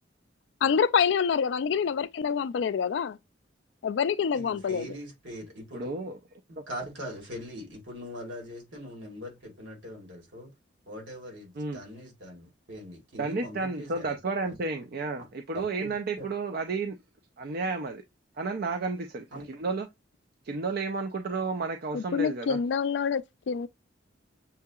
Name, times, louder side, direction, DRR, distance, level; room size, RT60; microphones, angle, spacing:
voice 1, 0.6-3.2 3.8-4.9 21.9-23.7, left 6 dB, 65° left, 0.3 m, -26 dB
voice 2, 4.3-5.9 6.5-10.5 10.9-14.2 14.4-14.6 15.2-15.3 15.5-15.9 16.2-16.3 19.3-19.5, equal, 75° right, 2.1 m, -42 dB
voice 3, 5.7-6.2 6.6-6.7 11.6-11.8 13.2-17.0 17.4-18.0 18.4-19.9 20.4-22.6, right 3 dB, 50° right, 0.4 m, -32 dB
6.8 x 2.8 x 2.3 m
head